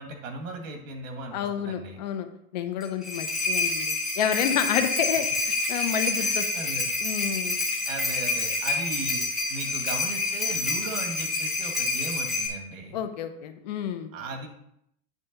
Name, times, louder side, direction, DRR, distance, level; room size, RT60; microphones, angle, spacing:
voice 1, 0.0-2.0 6.2-6.9 7.8-9.2 9.5-13.0 14.1-14.5, right 3 dB, 90° right, 3 dB, 1.9 m, -37 dB
voice 2, 1.3-2.3 2.5-6.5 7.0-7.6 12.9-14.1, left 8 dB, 35° left, 8 dB, 0.6 m, -29 dB
sound 1, 2.8-12.5, left 3 dB, ahead, 0.8 m, -28 dB
9.0 x 3.3 x 6.6 m, 0.74 s
supercardioid pair, 180°, 39 cm